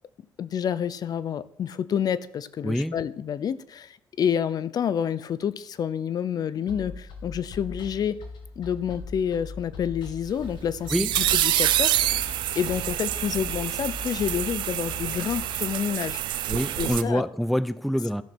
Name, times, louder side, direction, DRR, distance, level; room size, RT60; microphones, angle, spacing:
voice 1, 0.4-8.2 8.6-16.2 16.8-17.3, left 8 dB, 55° left, 0.6 m, -29 dB
voice 2, 2.6-3.0 10.9-11.1 16.5-18.2, equal, ahead, 0.4 m, -26 dB
sound 1, 6.7-15.6, left 4 dB, 75° left, 1.9 m, -40 dB
sound 2, 10.3-17.0, right 13 dB, 85° right, 0.6 m, -27 dB
13.5 x 6.4 x 6.1 m
cardioid pair, 90°, 8 cm